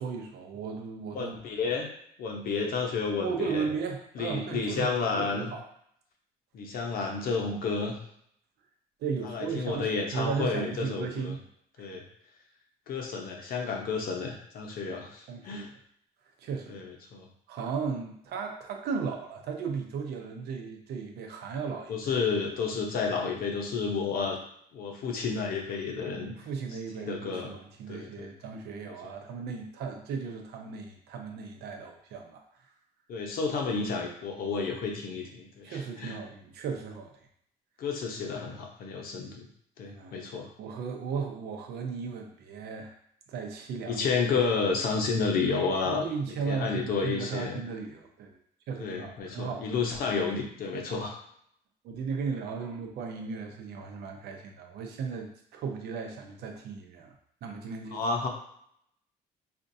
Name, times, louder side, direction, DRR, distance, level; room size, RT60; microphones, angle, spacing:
voice 1, 0.0-1.4 3.2-5.7 9.0-11.4 11.8-11.9 15.3-15.7 16.4-16.8 17.5-21.9 26.1-32.4 35.6-37.1 39.8-40.2 40.6-42.9 43.3-44.0 45.9-48.4 48.7-49.8 51.8-57.1 57.4-58.0, right 5 dB, 75° right, 3 dB, 0.7 m, -36 dB
voice 2, 1.1-1.9 2.2-3.7 4.1-5.5 6.5-8.0 9.2-11.4 11.8-12.0 12.9-15.7 16.7-17.3 21.9-24.4 24.7-26.3 26.9-27.5 27.9-28.3 29.0-29.1 33.1-36.2 37.8-39.5 39.8-40.5 43.9-47.6 48.8-51.1 57.9-58.3, left 4 dB, 60° left, 1 dB, 0.8 m, -31 dB
4.3 x 2.5 x 2.6 m, 0.70 s
cardioid pair, 110°, 17 cm